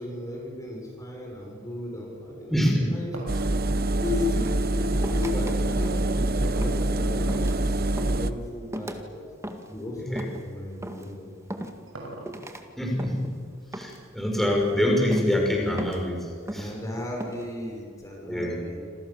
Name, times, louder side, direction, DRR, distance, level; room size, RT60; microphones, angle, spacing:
voice 1, 0.0-2.6 2.9-3.4 3.7-9.2 9.7-11.4 16.5-18.8, left 2 dB, 15° left, -1 dB, 6.4 m, -35 dB
voice 2, 2.5-2.9 10.0-10.2 12.8-13.3 13.7-16.7 18.3-18.6, left 1 dB, ahead, -1 dB, 6.3 m, -25 dB
sound 1, 2.7-5.0 6.4-7.3 8.0-8.5 8.8-8.9 9.7-9.8 11.1-12.6, right 1 dB, 80° right, 6.9 m, -42 dB
Engine, 3.3-8.3, right 1 dB, 50° right, 1.0 m, -25 dB
sound 2, 4.3-5.5 5.8-6.2 6.6-6.9 7.3-7.6 8.0-8.3 8.7-9.0 9.4-9.8 10.2-10.5 10.8-11.1 11.5-12.0 12.2-12.6 13.0-13.4 13.7-14.1 14.4-14.7 15.1-15.4 15.8-16.1 16.5-16.8 17.2-17.5, right 1 dB, 15° right, 1.9 m, -37 dB
27.5 x 27.0 x 7.3 m, 2.1 s
head